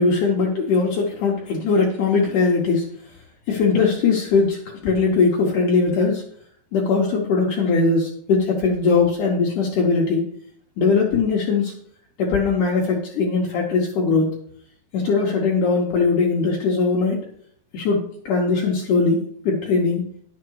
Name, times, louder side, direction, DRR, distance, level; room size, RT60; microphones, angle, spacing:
voice 1, 0.0-2.8 3.5-6.2 6.7-10.3 10.8-11.7 12.2-14.3 14.9-17.2 17.7-18.0 18.3-19.2 19.5-20.0, left 4 dB, 80° left, -1 dB, 1.8 m, -20 dB
10.5 x 7.3 x 4.7 m, 0.62 s
omnidirectional pair, 5.4 m